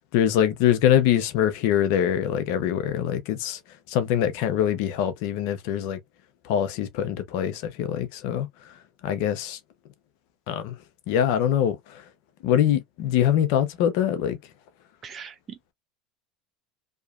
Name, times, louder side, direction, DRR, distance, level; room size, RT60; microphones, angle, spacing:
voice 1, 0.1-3.6 3.9-6.0 6.4-8.5 9.0-9.6 10.5-10.8 11.1-12.0 12.4-14.4, left 10 dB, 70° left, 0.6 m, -23 dB
voice 2, 15.0-15.7, right 7 dB, 35° right, 0.8 m, -41 dB
2.8 x 2.4 x 2.4 m
supercardioid pair, 100°, 0 cm